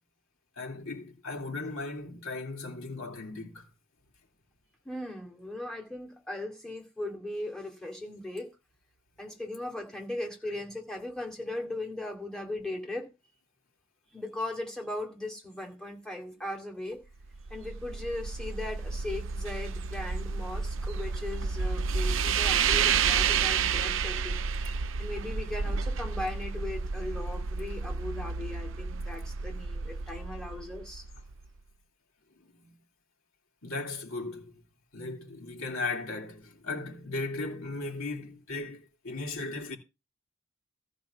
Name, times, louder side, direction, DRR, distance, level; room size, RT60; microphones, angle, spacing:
voice 1, 0.6-3.7 32.6-32.7 33.6-34.6 34.9-39.8, left 3 dB, 85° left, 3.2 m, -37 dB
voice 2, 4.8-8.5 9.2-13.1 14.1-17.0 17.5-24.4 25.0-31.0, left 1 dB, 5° left, 2.4 m, -38 dB
sound 1, 17.2-31.4, right 6 dB, 70° right, 0.6 m, -30 dB
14.5 x 5.1 x 6.9 m
head